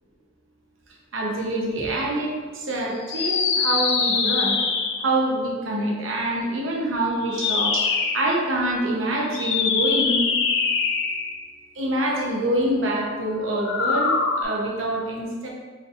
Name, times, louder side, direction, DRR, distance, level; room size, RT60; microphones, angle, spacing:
voice 1, 1.1-4.6 5.0-10.3 11.7-14.1 14.4-15.5, right 1 dB, 75° right, -2 dB, 0.8 m, -25 dB
sound 1, 3.1-5.2 7.2-8.3 9.3-11.5 13.5-14.4, left 5 dB, 60° left, 0.4 m, -23 dB
4.2 x 3.3 x 2.4 m, 1.5 s
head